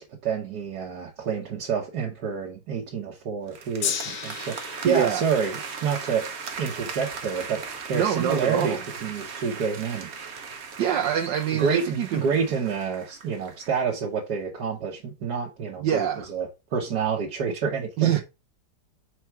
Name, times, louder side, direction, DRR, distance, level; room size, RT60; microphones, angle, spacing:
voice 1, 0.0-6.3 6.6-10.1 11.5-18.1, right 6 dB, 65° right, 1.6 m, -28 dB
sound 1, 3.5-13.8, right 5 dB, 45° right, 1.0 m, -38 dB
Gong, 3.8-10.2 11.0-11.1, left 8 dB, 80° left, 1.5 m, -37 dB
voice 2, 4.8-5.2 7.9-8.8 10.8-12.2 15.8-16.3 18.0-18.2, right 10 dB, 80° right, 1.4 m, -25 dB
4.7 x 4.5 x 4.4 m
omnidirectional pair, 1.9 m